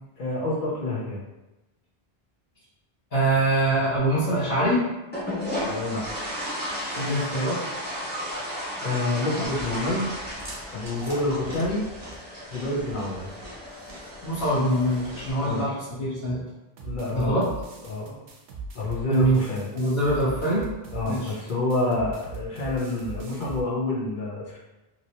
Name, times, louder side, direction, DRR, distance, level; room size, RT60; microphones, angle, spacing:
voice 1, 0.2-1.2 5.6-6.0 8.8-10.1 10.7-11.8 12.5-13.3 15.4-15.7 16.8-17.4 17.9-18.2 18.7-19.7 20.9-24.6, left 2 dB, 55° left, -4 dB, 1.0 m, -28 dB
voice 2, 3.1-4.8 7.0-7.6 14.2-16.4 17.1-17.5 19.1-19.4 19.7-20.7 21.0-21.3, right 1 dB, 70° left, -12 dB, 1.3 m, -24 dB
sound 1, 5.1-15.6, equal, 10° left, 0.8 m, -34 dB
Chewing mastication, 9.4-15.3, equal, 20° right, 0.5 m, -43 dB
sound 2, 16.8-23.6, right 3 dB, 85° right, 0.9 m, -39 dB
3.0 x 2.8 x 2.7 m, 1.0 s
omnidirectional pair, 1.1 m